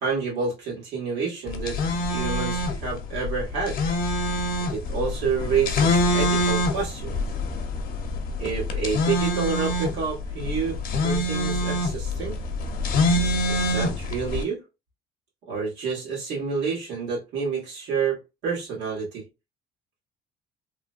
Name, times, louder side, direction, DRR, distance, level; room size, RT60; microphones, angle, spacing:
voice 1, 0.0-1.8 2.1-3.8 4.7-7.2 8.4-12.4 13.5-14.6 15.5-19.2, right 5 dB, 85° right, 1.6 m, -29 dB
sound 1, 1.5-14.4, left 1 dB, 60° left, 0.7 m, -25 dB
3.0 x 2.1 x 2.5 m
cardioid pair, 110°, 17 cm